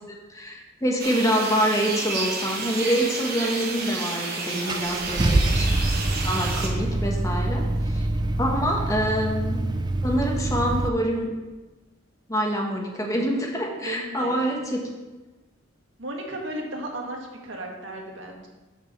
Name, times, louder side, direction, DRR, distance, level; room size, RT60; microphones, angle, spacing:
voice 1, 0.3-5.7 6.2-8.0 8.4-9.6 10.0-11.3 12.3-14.9, equal, 15° left, 0 dB, 1.2 m, -26 dB
sound 1, 1.0-6.7, right 3 dB, 50° right, 1.3 m, -31 dB
Car / Engine starting, 4.0-4.1 4.7-10.9, right 2 dB, 20° right, 0.4 m, -25 dB
voice 2, 4.7-5.3 13.8-14.4 16.0-18.5, right 1 dB, 70° right, 1 dB, 1.6 m, -35 dB
6.0 x 5.4 x 6.5 m, 1.1 s
head